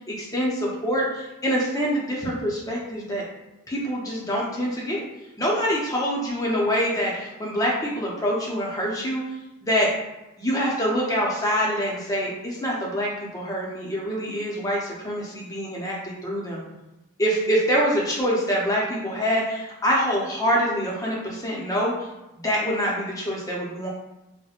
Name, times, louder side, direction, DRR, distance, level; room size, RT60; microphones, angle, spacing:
voice 1, 0.1-3.2 3.7-5.0 5.4-9.2 9.6-9.9 10.4-16.6 17.2-21.9 22.4-23.9, equal, 15° left, -4 dB, 0.6 m, -25 dB
4.3 x 2.1 x 2.4 m, 0.97 s
head